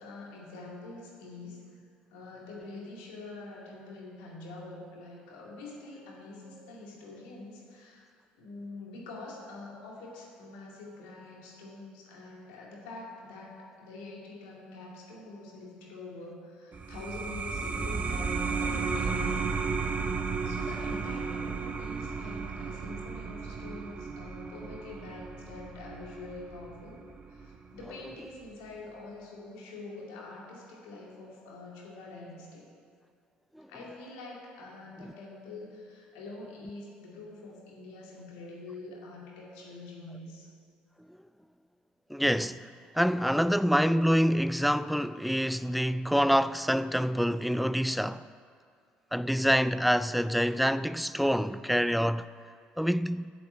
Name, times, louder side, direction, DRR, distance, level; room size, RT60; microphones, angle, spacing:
voice 1, 0.0-1.7 2.1-8.1 8.3-19.4 20.4-27.0 27.3-32.7 33.7-40.5, left 2 dB, 80° left, 2.3 m, -45 dB
sound 1, 16.7-27.9, right 5 dB, 35° right, 1.0 m, -34 dB
voice 2, 42.1-42.7 42.9-48.3 49.1-52.3 52.8-53.3, equal, ahead, 0.3 m, -26 dB
7.7 x 7.6 x 8.5 m
hypercardioid pair, 65°, 4 cm